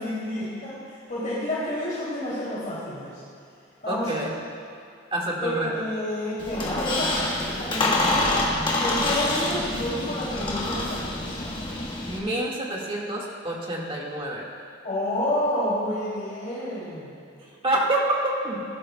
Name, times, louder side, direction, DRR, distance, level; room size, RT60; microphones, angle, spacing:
voice 1, 0.0-3.2 3.8-4.4 5.4-8.5 8.8-11.5 14.8-17.2, left 1 dB, 45° left, -10 dB, 2.8 m, -30 dB
voice 2, 3.9-4.3 5.1-5.7 12.1-14.5 17.6-18.6, right 1 dB, 30° right, -3 dB, 1.7 m, -27 dB
Squeak, 6.4-12.2, left 2 dB, 25° left, 1.4 m, -26 dB
18.5 x 11.5 x 2.2 m, 2.4 s
head